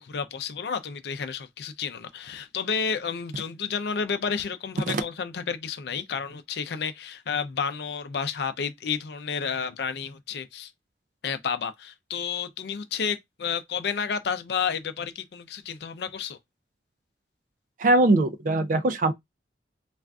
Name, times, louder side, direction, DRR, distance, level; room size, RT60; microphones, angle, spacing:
voice 1, 0.0-10.7 11.2-16.4, left 6 dB, 70° left, 0.4 m, -31 dB
voice 2, 17.8-19.1, right 2 dB, 45° right, 0.4 m, -21 dB
3.4 x 2.4 x 2.3 m
head